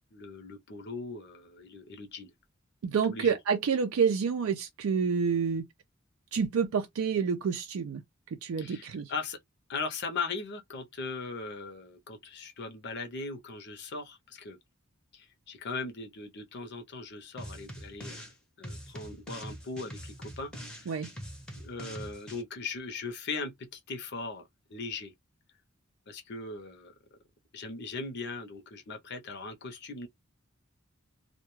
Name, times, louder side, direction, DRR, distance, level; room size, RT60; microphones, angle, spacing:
voice 1, 0.1-2.3 3.1-3.4 8.6-9.4 9.7-14.6 15.1-18.3 18.6-21.0 21.5-25.1 26.1-26.9 27.5-30.1, left 4 dB, 55° left, 0.7 m, -39 dB
voice 2, 2.8-5.7 6.3-8.0 8.4-9.1 20.9-21.1, right 6 dB, 80° right, 0.4 m, -28 dB
sound 1, 17.4-18.3 18.6-22.4, equal, 5° left, 0.6 m, -43 dB
2.3 x 2.1 x 3.0 m
head